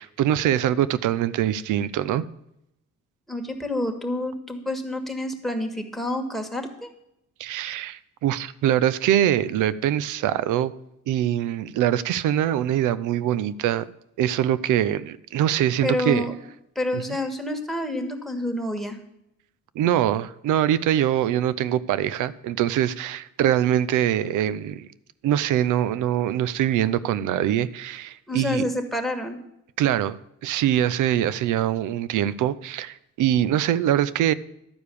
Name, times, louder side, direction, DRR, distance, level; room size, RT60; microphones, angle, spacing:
voice 1, 0.0-2.2 7.4-10.7 11.1-13.9 14.2-16.3 16.9-17.0 19.8-24.9 25.2-28.7 29.8-34.3, right 11 dB, 85° right, 0.6 m, -23 dB
voice 2, 3.3-6.9 15.8-16.4 16.7-19.0 28.3-29.4, left 1 dB, ahead, 1.7 m, -28 dB
12.0 x 4.8 x 8.5 m
cardioid pair, 90°, 30 cm